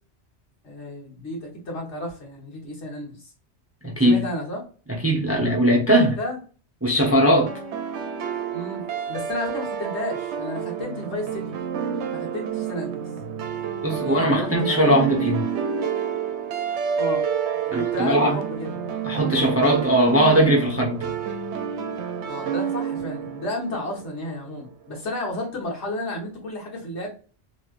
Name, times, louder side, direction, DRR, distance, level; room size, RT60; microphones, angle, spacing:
voice 1, 0.6-3.3 4.0-4.6 5.3-5.5 6.0-6.4 8.5-11.6 12.1-13.0 13.8-14.9 17.0-17.2 17.7-18.7 22.3-27.1, left 1 dB, 75° left, -2 dB, 1.6 m, -32 dB
voice 2, 3.8-4.2 4.9-6.2 6.8-7.5 13.8-15.5 17.7-18.3 19.0-21.1, equal, 15° right, -2 dB, 0.6 m, -19 dB
sound 1, 7.5-24.4, right 7 dB, 75° right, 0.8 m, -29 dB
3.1 x 2.9 x 2.4 m, 0.38 s
omnidirectional pair, 1.2 m